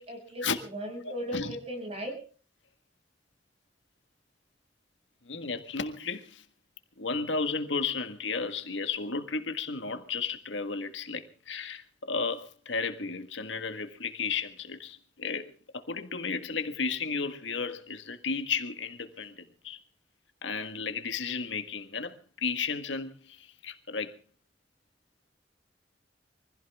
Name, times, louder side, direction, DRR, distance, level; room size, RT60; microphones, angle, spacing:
voice 1, 0.0-2.1, equal, 35° right, 6.7 m, -37 dB
voice 2, 1.0-1.5 5.2-6.4 7.0-19.8 20.4-24.1, left 5 dB, 80° left, 1.7 m, -33 dB
24.5 x 16.0 x 3.6 m
head